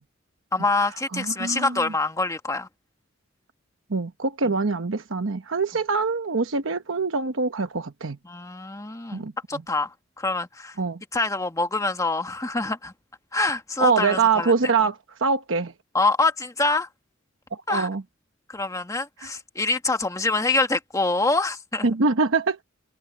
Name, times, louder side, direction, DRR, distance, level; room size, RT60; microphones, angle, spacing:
voice 1, 0.5-2.7 8.2-10.7 11.1-12.9 13.3-14.5 15.9-16.9 17.7-17.9 18.5-21.9, left 3 dB, 15° left, 1.6 m, -25 dB
voice 2, 1.1-1.9 3.9-8.2 9.1-9.3 10.8-11.0 13.8-15.7 17.5-18.0 21.8-22.6, right 4 dB, 75° right, 1.0 m, -24 dB
head